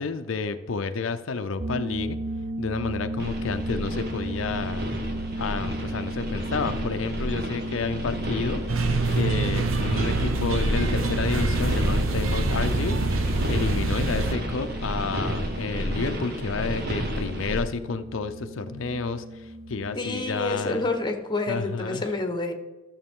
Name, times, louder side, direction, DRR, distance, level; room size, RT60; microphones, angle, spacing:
voice 1, 0.0-2.2 2.6-4.8 5.4-8.6 9.1-20.8 21.5-22.1, left 4 dB, 75° left, 8 dB, 0.6 m, -30 dB
sound 1, 1.6-20.3, right 1 dB, 35° right, 0.5 m, -36 dB
sound 2, 3.2-17.6, equal, 50° right, 1.7 m, -31 dB
sound 3, 8.7-14.3, right 2 dB, 85° right, 0.8 m, -26 dB
voice 2, 19.9-22.5, left 2 dB, 25° left, 5 dB, 1.1 m, -28 dB
13.0 x 7.2 x 3.7 m, 1.2 s
head